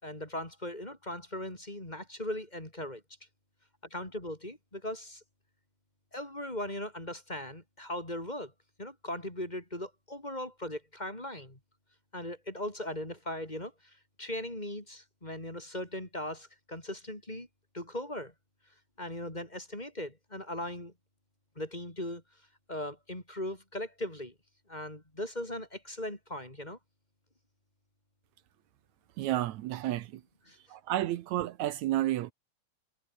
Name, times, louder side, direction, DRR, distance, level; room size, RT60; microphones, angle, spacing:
voice 1, 0.0-3.0 3.9-5.2 6.1-8.5 8.8-11.6 12.1-17.5 17.7-18.3 19.0-20.9 21.6-22.2 22.7-24.3 24.7-26.8 30.5-30.6, left 1 dB, 15° left, 4.1 m, -39 dB
voice 2, 29.2-30.2 30.7-32.3, right 14 dB, 75° right, 2.1 m, -31 dB
omnidirectional pair, 3.4 m